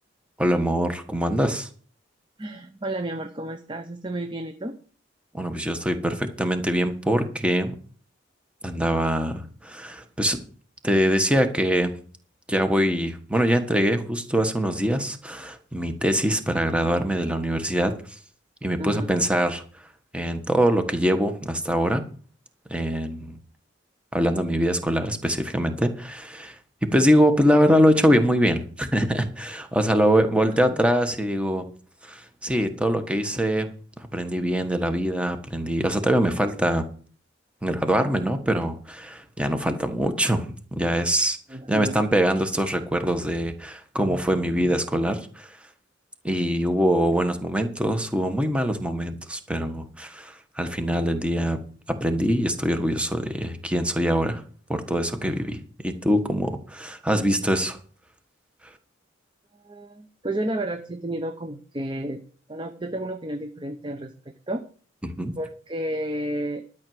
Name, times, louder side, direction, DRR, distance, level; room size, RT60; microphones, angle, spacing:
voice 1, 0.4-1.7 5.3-7.7 8.6-10.4 10.8-11.9 12.5-18.2 18.6-19.6 20.1-22.0 22.7-23.4 24.1-31.6 32.0-33.7 34.1-36.8 37.6-41.4 41.7-45.6 46.2-51.6 51.9-54.4 54.7-57.8 65.0-65.3, equal, 5° right, 7 dB, 1.3 m, -23 dB
voice 2, 2.4-4.8 18.8-19.1 30.7-30.8 41.5-42.0 59.5-62.2 62.5-64.1 64.5-64.6 65.4-66.6, right 1 dB, 25° right, 7 dB, 0.7 m, -31 dB
12.0 x 6.0 x 7.8 m, 0.43 s
head